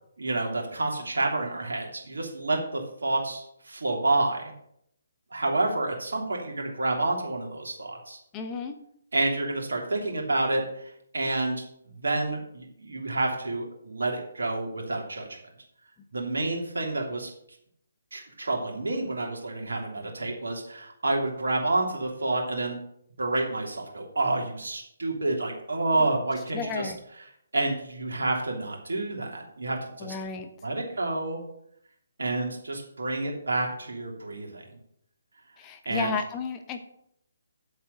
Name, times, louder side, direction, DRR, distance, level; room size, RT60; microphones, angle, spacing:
voice 1, 0.2-4.5 5.3-8.2 9.1-15.3 16.1-17.3 18.1-22.8 23.2-26.9 27.5-30.1 30.6-31.4 32.2-34.8 35.8-36.1, right 2 dB, 60° right, 1 dB, 2.9 m, -29 dB
voice 2, 8.3-8.8 26.5-27.0 30.0-30.5 35.6-36.9, left 5 dB, 20° left, 6 dB, 0.9 m, -33 dB
8.6 x 7.8 x 6.4 m, 0.72 s
figure-of-eight pair, 140°, 0 cm